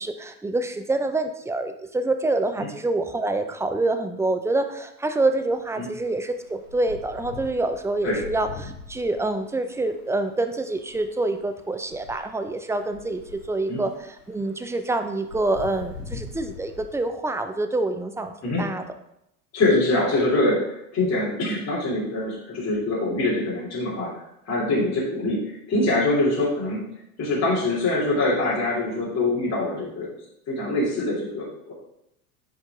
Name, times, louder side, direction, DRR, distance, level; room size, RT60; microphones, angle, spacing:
voice 1, 0.0-13.9 14.3-18.8, right 2 dB, 5° right, 7 dB, 0.7 m, -26 dB
sound 1, 5.5-5.6 5.9-17.0, left 4 dB, 80° left, 1.9 m, -42 dB
voice 2, 19.5-24.1 24.4-25.4 25.7-26.8 27.2-30.1 30.5-31.7, left 2 dB, 35° left, -6 dB, 3.1 m, -24 dB
9.7 x 5.1 x 3.6 m, 0.79 s
figure-of-eight pair, 75°, 48 cm